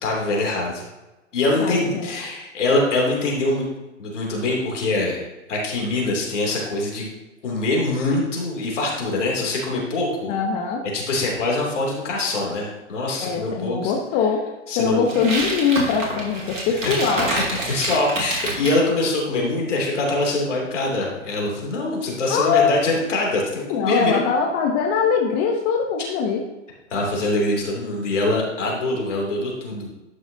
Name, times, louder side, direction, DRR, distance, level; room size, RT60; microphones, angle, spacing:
voice 1, 0.0-0.9 1.3-3.7 4.0-5.2 5.5-7.0 7.4-10.4 10.9-13.9 14.7-15.1 16.8-16.9 17.3-24.3 26.9-29.9, left 2 dB, 70° left, -2 dB, 2.9 m, -23 dB
voice 2, 1.6-2.1 10.3-10.8 13.2-14.5 14.8-17.3 22.3-22.8 23.7-26.4, left 6 dB, 35° left, 2 dB, 0.9 m, -22 dB
sound 1, 15.1-18.8, right 2 dB, 85° right, 2.4 m, -27 dB
11.5 x 6.0 x 2.8 m, 1.1 s
hypercardioid pair, 115°, 38 cm